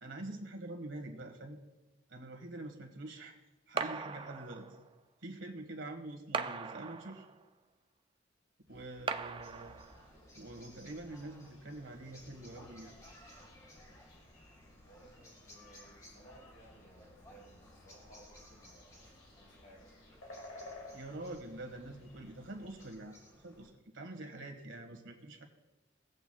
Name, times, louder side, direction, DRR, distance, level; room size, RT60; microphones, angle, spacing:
voice 1, 0.0-1.6 2.1-3.3 3.7-4.7 5.2-7.2 8.7-9.8 10.4-12.9 20.9-23.2 23.4-25.5, right 2 dB, 80° right, 3 dB, 1.6 m, -45 dB
sound 1, 3.8-4.9 6.3-7.5 9.1-10.1, right 5 dB, 25° right, 0.4 m, -39 dB
sound 2, 8.7-22.9, left 1 dB, 80° left, 1.8 m, -57 dB
sound 3, 9.4-23.7, left 1 dB, 15° left, 1.6 m, -59 dB
voice 2, 14.9-20.2, right 1 dB, 50° left, -2 dB, 3.1 m, -60 dB
18.5 x 8.1 x 2.3 m, 1.0 s
head